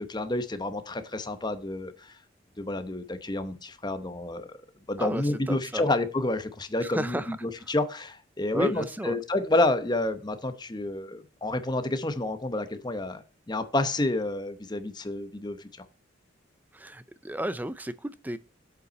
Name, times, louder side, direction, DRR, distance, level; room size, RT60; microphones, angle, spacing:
voice 1, 0.0-2.2 2.6-4.5 4.9-15.7, left 2 dB, 20° left, 0.8 m, -29 dB
voice 2, 5.0-5.8 6.8-7.4 8.5-9.2 16.7-18.4, right 1 dB, 10° right, 0.5 m, -33 dB
7.9 x 5.5 x 4.2 m
head